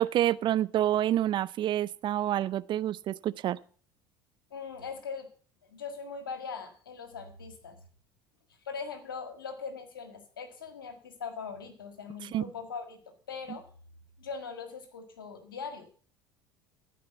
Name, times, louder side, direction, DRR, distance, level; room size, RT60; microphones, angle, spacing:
voice 1, 0.0-3.6 12.3-12.4, right 12 dB, 45° right, 18 dB, 0.5 m, -28 dB
voice 2, 4.5-5.3 5.6-7.8 8.7-13.0 13.3-13.7 14.2-15.9, left 5 dB, 90° left, 7 dB, 1.7 m, -40 dB
13.5 x 4.9 x 7.0 m, 0.44 s
hypercardioid pair, 75°, 11 cm